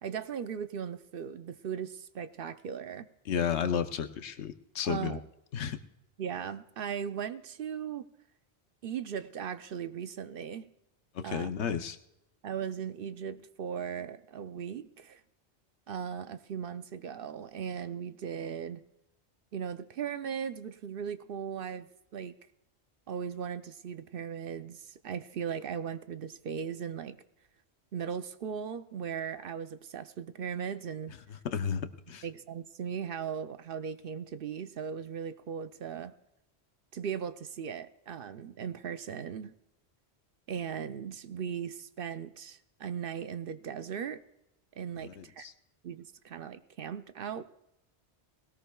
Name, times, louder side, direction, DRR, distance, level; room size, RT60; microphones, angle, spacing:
voice 1, 0.0-3.1 4.8-5.2 6.2-8.0 8.8-10.7 11.2-11.5 12.4-15.2 15.9-18.8 19.5-22.3 23.1-27.2 27.9-31.1 32.2-36.1 36.9-39.5 40.5-44.2 44.8-45.5 45.8-47.4, right 7 dB, 60° right, 11 dB, 0.8 m, -38 dB
voice 2, 3.3-5.2 5.5-5.8 11.1-12.0 31.4-32.2 45.0-45.5, left 7 dB, 85° left, 9 dB, 1.1 m, -32 dB
19.5 x 18.0 x 2.3 m, 0.85 s
omnidirectional pair, 1.1 m